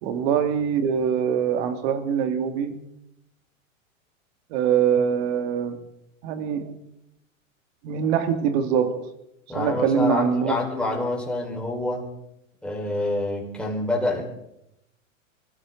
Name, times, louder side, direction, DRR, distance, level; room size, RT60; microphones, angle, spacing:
voice 1, 0.0-2.8 4.5-5.8 6.2-6.8 7.8-9.1 9.5-10.5, right 7 dB, 50° right, 2.3 m, -23 dB
voice 2, 9.5-12.1 12.6-14.2, left 2 dB, ahead, 4.5 m, -27 dB
24.5 x 15.0 x 3.9 m
hypercardioid pair, 115°, 41 cm